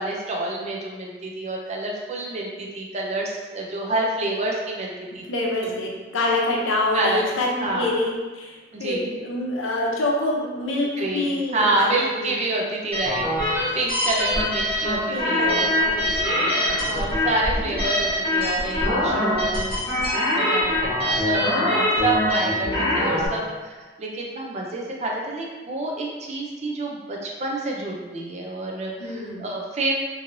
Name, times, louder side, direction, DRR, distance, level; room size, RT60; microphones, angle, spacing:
voice 1, 0.0-5.2 5.6-5.7 6.9-7.2 7.6-7.9 8.7-9.1 11.0-15.7 16.8-20.0 20.3-20.7 21.0-29.9, right 2 dB, 35° right, -1 dB, 0.5 m, -28 dB
voice 2, 5.3-11.9 12.2-12.4 15.1-17.0 21.2-21.6 29.0-29.4, left 2 dB, 90° left, -2 dB, 0.6 m, -26 dB
sound 1, 12.9-23.3, left 1 dB, 30° left, 1.1 m, -23 dB
3.0 x 2.6 x 2.6 m, 1.3 s
head